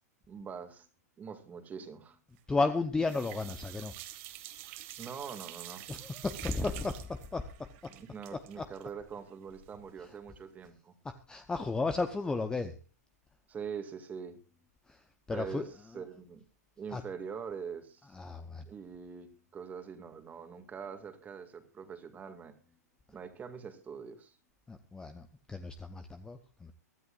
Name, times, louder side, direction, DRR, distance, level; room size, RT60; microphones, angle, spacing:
voice 1, 0.3-0.9 1.2-2.2 5.0-5.8 7.9-10.9 13.5-14.4 15.3-16.4 16.8-18.1 18.7-22.5 23.1-24.4, right 6 dB, 20° right, 7 dB, 2.1 m, -43 dB
sound 1, 2.4-2.8 3.0-9.9 10.2-10.3 10.7-10.8, right 14 dB, 45° right, 1.9 m, -47 dB
voice 2, 2.5-3.9 5.9-7.7 8.3-8.6 10.0-10.1 11.0-12.8 14.9-15.0 15.3-15.7 15.9-16.0 16.9-17.0 18.1-18.6 24.7-26.7, left 3 dB, 10° left, 8 dB, 0.9 m, -34 dB
23.5 x 12.5 x 2.5 m, 0.33 s
hypercardioid pair, 140°, 9 cm